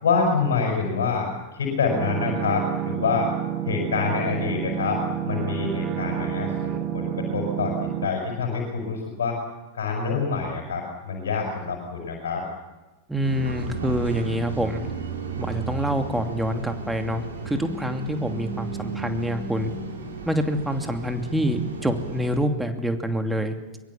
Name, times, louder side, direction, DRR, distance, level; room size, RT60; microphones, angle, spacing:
voice 1, 0.0-3.3 3.7-9.4 9.7-12.5, left 5 dB, 65° left, 1 dB, 5.9 m, -26 dB
sound 1, 1.9-8.1, right 10 dB, 30° right, 1.6 m, -29 dB
voice 2, 13.1-14.8 15.4-19.7 20.3-23.6, equal, 5° right, 5 dB, 2.6 m, -26 dB
sound 2, 13.2-22.4, right 3 dB, 70° right, 5.1 m, -34 dB
23.5 x 23.0 x 7.2 m, 1.1 s
figure-of-eight pair, 90°, 0 cm